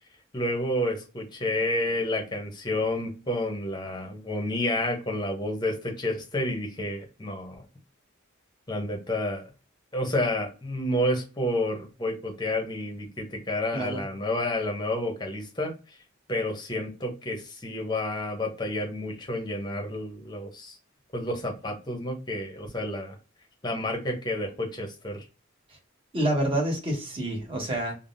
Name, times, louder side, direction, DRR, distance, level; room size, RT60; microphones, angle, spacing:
voice 1, 0.3-7.6 8.7-9.4 9.9-15.7 16.3-20.8 21.1-23.2 23.6-25.2, left 1 dB, 20° left, 0.7 m, -30 dB
voice 2, 13.7-14.0 26.1-28.0, right 1 dB, 25° right, 0.9 m, -27 dB
3.4 x 2.0 x 2.6 m
head